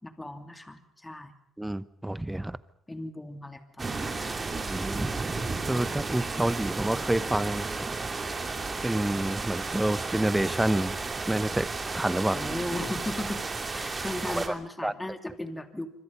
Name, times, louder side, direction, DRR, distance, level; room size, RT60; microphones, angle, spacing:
voice 1, 0.0-1.3 2.9-4.4 12.3-15.9, left 1 dB, 10° left, 7 dB, 2.9 m, -37 dB
voice 2, 1.6-2.6 4.7-5.3 5.7-7.7 8.8-11.0 11.3-11.7 11.9-12.4 14.3-14.4 14.8-14.9, right 1 dB, 5° right, 16 dB, 1.0 m, -28 dB
sound 1, 3.8-14.5, right 3 dB, 25° right, 3.0 m, -33 dB
26.5 x 25.5 x 5.4 m, 0.71 s
cardioid pair, 120°, 0 cm